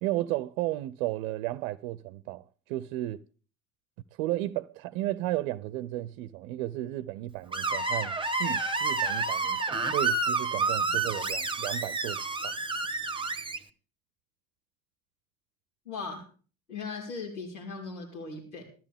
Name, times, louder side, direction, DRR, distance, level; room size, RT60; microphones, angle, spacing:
voice 1, 0.0-3.2 4.2-12.5, right 15 dB, 60° right, 0.7 m, -34 dB
Screech, 7.5-13.6, right 3 dB, 10° right, 1.4 m, -29 dB
voice 2, 15.9-16.2 16.7-18.6, left 4 dB, 90° left, 4.1 m, -38 dB
19.5 x 13.0 x 3.6 m
figure-of-eight pair, 60°, 41 cm